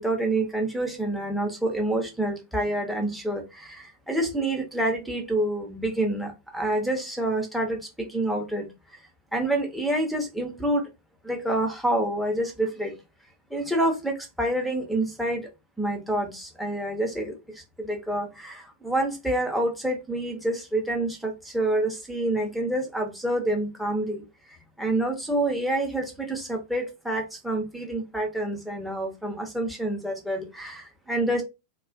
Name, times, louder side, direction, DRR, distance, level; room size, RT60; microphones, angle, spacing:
voice 1, 0.0-8.7 9.3-10.9 11.2-13.0 13.5-15.5 15.8-24.2 24.8-31.4, right 1 dB, ahead, 0.8 m, -27 dB
2.4 x 2.4 x 2.5 m
figure-of-eight pair, 90°, 0 cm